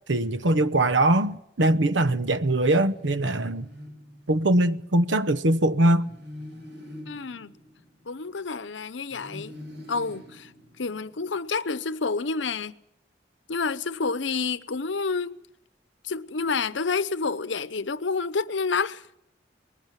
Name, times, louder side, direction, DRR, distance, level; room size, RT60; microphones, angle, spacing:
voice 1, 0.1-3.7 4.3-6.0, right 1 dB, 85° right, 1.0 m, -22 dB
sound 1, 2.6-4.7 5.9-8.6 9.1-11.3, left 1 dB, 70° right, 6.7 m, -45 dB
voice 2, 7.1-7.5 8.1-9.6 9.9-10.5 10.8-12.8 13.5-15.4 16.0-19.1, left 4 dB, 85° left, 0.8 m, -29 dB
20.5 x 16.5 x 9.0 m
head